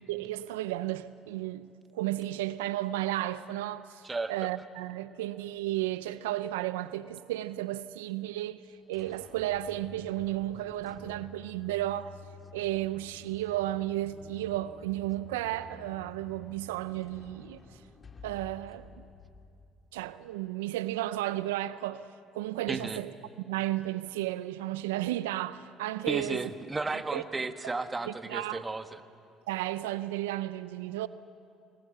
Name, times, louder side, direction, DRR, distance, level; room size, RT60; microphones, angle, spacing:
voice 1, 0.1-4.0 4.3-8.6 8.9-12.2 12.5-17.6 18.2-18.9 19.9-22.1 22.3-23.1 23.4-26.4 27.1-27.2 28.1-28.6 29.5-31.1, right 15 dB, 90° right, 0.4 m, -33 dB
sound 1, 8.6-20.3, left 3 dB, 30° left, 2.4 m, -51 dB
voice 2, 22.7-23.0 26.1-29.0, right 3 dB, 25° right, 1.4 m, -34 dB
24.0 x 19.5 x 7.8 m
hypercardioid pair, 70°, 0 cm